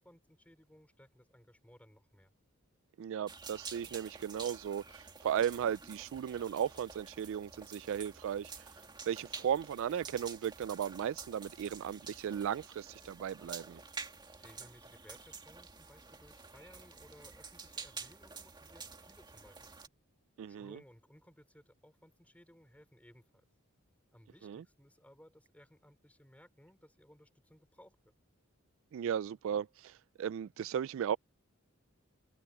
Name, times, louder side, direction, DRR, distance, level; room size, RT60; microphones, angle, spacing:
voice 1, 0.0-2.3 14.4-19.8 20.5-23.5 24.1-28.1, equal, 5° left, 4.5 m, -60 dB
voice 2, 3.0-8.7 9.1-13.8 20.4-20.8 24.4-24.6 28.9-31.2, right 9 dB, 65° right, 0.3 m, -36 dB
sound 1, 3.3-19.9, right 4 dB, 20° right, 2.1 m, -49 dB
open air
head